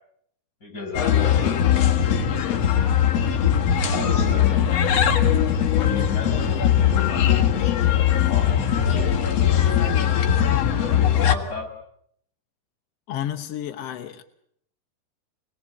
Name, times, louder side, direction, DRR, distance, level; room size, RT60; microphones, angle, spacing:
voice 1, 0.6-3.1 3.9-4.7 5.8-9.8 10.6-11.7, left 3 dB, 25° left, 5 dB, 7.0 m, -36 dB
sound 1, 0.9-11.3, left 9 dB, 50° left, 2.2 m, -20 dB
voice 2, 13.1-14.2, left 11 dB, 75° left, 6 dB, 1.4 m, -31 dB
27.5 x 21.0 x 8.5 m, 0.71 s
omnidirectional pair, 4.6 m